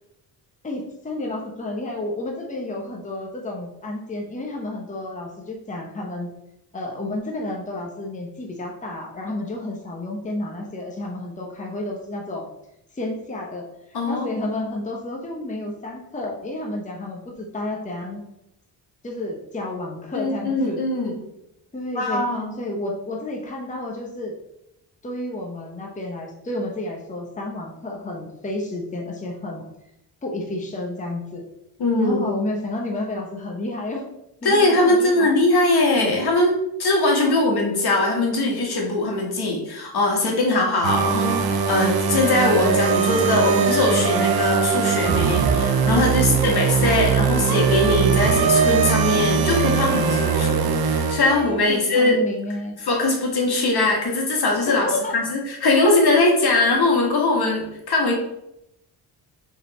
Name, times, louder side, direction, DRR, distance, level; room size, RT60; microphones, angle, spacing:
voice 1, 0.6-6.3 6.7-12.4 12.9-18.2 19.0-20.8 21.7-22.2 22.6-24.4 25.0-29.6 30.2-31.4 32.0-34.1 34.4-35.3 37.1-37.4 46.2-46.7 49.7-50.7 51.2-52.8 54.7-55.2, left 2 dB, 20° left, 0 dB, 0.9 m, -31 dB
voice 2, 13.9-14.3 20.1-21.1 22.0-22.5 31.8-32.2 34.4-52.2 52.8-54.9 55.1-58.1, left 2 dB, 65° left, 0 dB, 1.9 m, -21 dB
sound 1, 40.8-51.7, right 6 dB, 60° right, 0.9 m, -21 dB
6.5 x 4.0 x 4.3 m, 0.84 s
wide cardioid pair, 140°, 42 cm